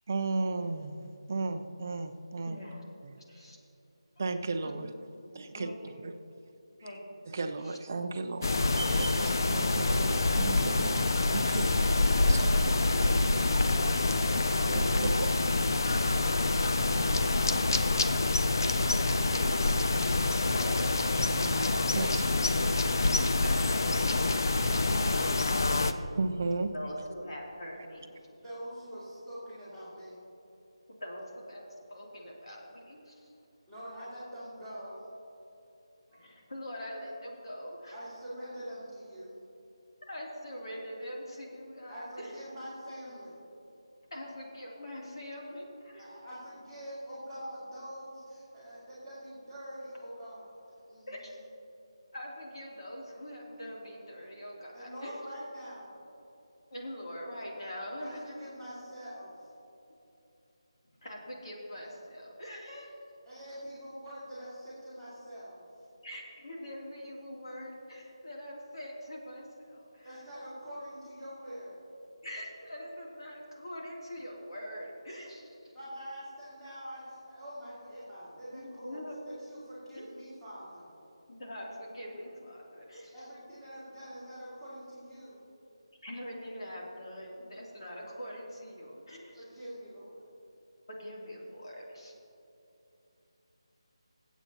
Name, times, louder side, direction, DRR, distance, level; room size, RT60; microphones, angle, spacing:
voice 1, 0.1-2.6 3.0-3.2 4.2-4.9 5.3-5.7 6.0-6.1 7.3-8.5 8.7-11.0 11.3-11.8 12.3-12.4 14.7-15.3 19.0-19.1 21.2-21.6 21.9-22.3 22.6-22.8 24.5-24.6 26.1-26.7, right 3 dB, 30° right, 8 dB, 0.5 m, -34 dB
voice 2, 2.5-2.8 3.3-3.6 4.6-4.9 5.6-6.1 6.8-7.2 7.6-7.8 12.2-12.7 17.3-17.4 20.4-21.0 23.4-24.5 26.7-28.3 31.0-33.3 36.1-38.0 40.1-42.3 44.1-46.2 51.1-51.3 52.1-55.2 56.7-58.2 61.0-62.9 66.0-70.2 72.2-75.7 78.5-79.3 79.9-80.1 81.3-83.1 86.0-89.4 90.9-92.1, equal, 65° left, -3 dB, 2.8 m, -43 dB
sound 1, 8.4-25.9, left 2 dB, 40° left, 0.5 m, -26 dB
voice 3, 12.9-15.1 17.0-19.7 21.5-21.7 22.0-22.3 24.6-25.6 28.4-30.3 33.7-35.1 37.9-39.4 41.9-43.4 46.0-50.6 50.9-51.1 54.7-56.0 58.0-59.5 63.2-65.6 70.0-71.8 75.7-80.9 83.1-85.5 89.4-90.2, equal, ahead, -16 dB, 2.5 m, -45 dB
22.5 x 8.1 x 2.9 m, 2.9 s
figure-of-eight pair, 175°, 3 cm